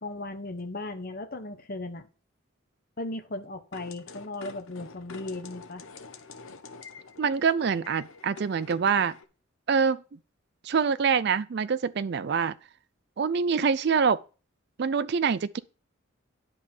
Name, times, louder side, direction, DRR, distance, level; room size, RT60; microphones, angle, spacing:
voice 1, 0.0-2.1 3.0-5.8, left 2 dB, 45° left, 1.1 m, -37 dB
sound 1, 3.7-9.2, left 4 dB, 85° left, 1.0 m, -46 dB
voice 2, 7.2-9.1 9.7-10.0 10.6-12.6 13.2-14.2 14.8-15.6, right 6 dB, 55° right, 0.4 m, -25 dB
10.5 x 5.2 x 5.4 m
head